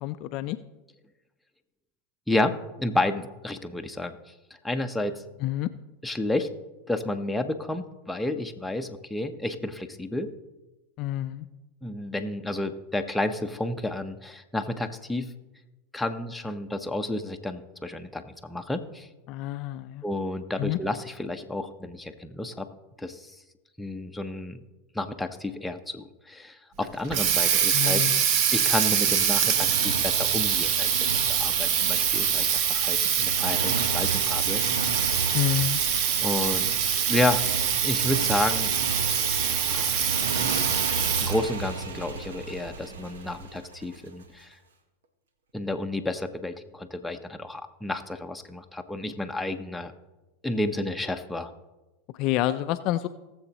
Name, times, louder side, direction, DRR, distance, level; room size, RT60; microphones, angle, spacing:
voice 1, 0.0-0.6 5.4-5.7 11.0-11.5 19.3-20.0 20.6-20.8 27.7-28.2 35.3-35.8 52.2-53.1, left 14 dB, 50° left, 10 dB, 0.4 m, -28 dB
voice 2, 2.3-4.2 4.6-5.2 6.0-6.5 6.9-10.3 11.8-15.3 15.9-19.1 20.0-22.7 23.0-23.4 23.8-24.6 24.9-28.0 28.5-31.1 31.4-34.6 36.2-36.7 37.1-38.7 39.7-40.5 41.2-44.6 45.5-49.9 50.4-51.5, left 1 dB, 5° left, 5 dB, 0.9 m, -31 dB
Water tap faucet, 26.8-41.5, right 8 dB, 55° right, 0.9 m, -24 dB
Motorcycle, 29.1-44.3, right 4 dB, 80° right, 1.1 m, -34 dB
18.5 x 7.1 x 3.0 m, 1.1 s
hypercardioid pair, 100°, 0 cm